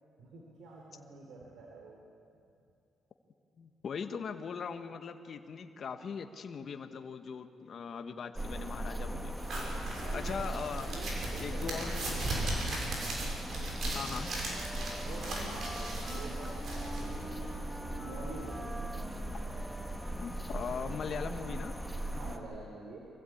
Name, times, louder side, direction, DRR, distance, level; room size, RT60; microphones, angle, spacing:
voice 1, 0.2-2.0 9.5-10.4 10.9-11.9 15.0-17.5 18.0-18.8 20.8-21.0 22.1-23.0, right 3 dB, 75° right, -1 dB, 3.5 m, -47 dB
voice 2, 3.6-9.4 10.1-10.9 11.4-12.8 13.9-14.3 20.2-21.7, left 6 dB, 55° left, 7 dB, 1.3 m, -40 dB
sound 1, 8.4-22.4, right 1 dB, 5° right, 1.7 m, -38 dB
sound 2, 9.4-17.6, right 2 dB, 60° right, 6.5 m, -39 dB
Wind instrument woodwind instrument, 13.5-21.6, equal, 35° right, 4.9 m, -48 dB
24.0 x 15.5 x 8.7 m, 2.5 s
cardioid pair, 90°, 0 cm